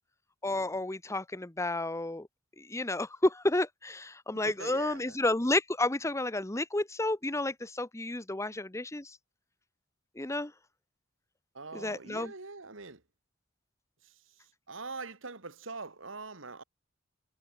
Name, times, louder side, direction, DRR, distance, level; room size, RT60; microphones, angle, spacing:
voice 1, 0.4-2.3 2.6-9.2 10.2-10.5 11.7-12.3, left 2 dB, 15° left, 1.1 m, -31 dB
voice 2, 4.4-5.2 11.5-13.0 14.0-14.1 14.7-16.6, right 3 dB, 75° right, 2.2 m, -43 dB
head